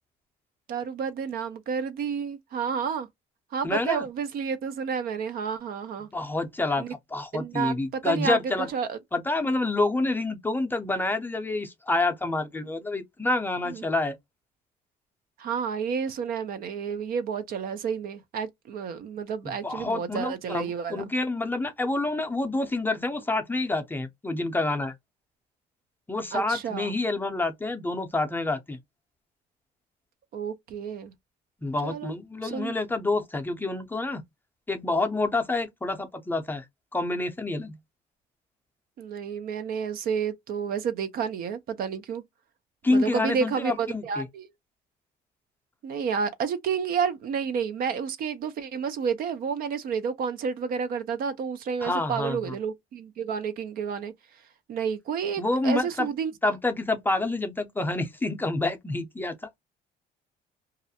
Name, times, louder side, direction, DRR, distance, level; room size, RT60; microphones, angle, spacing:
voice 1, 0.7-3.1 3.5-6.1 6.8-6.9 7.3-8.4 8.7-9.0 13.7-13.8 15.4-21.0 26.3-26.9 30.3-31.1 31.8-32.1 32.4-32.7 39.0-42.2 42.9-44.5 45.8-54.1 54.7-56.3, right 6 dB, 60° right, 0.4 m, -30 dB
voice 2, 3.6-4.0 6.1-8.7 9.1-14.1 19.4-24.9 26.1-28.8 31.6-34.2 34.7-36.6 36.9-37.7 42.8-44.3 51.8-52.5 55.4-56.1 56.4-59.6, left 2 dB, 10° left, 0.5 m, -28 dB
2.4 x 2.0 x 2.6 m
cardioid pair, 110°, 17 cm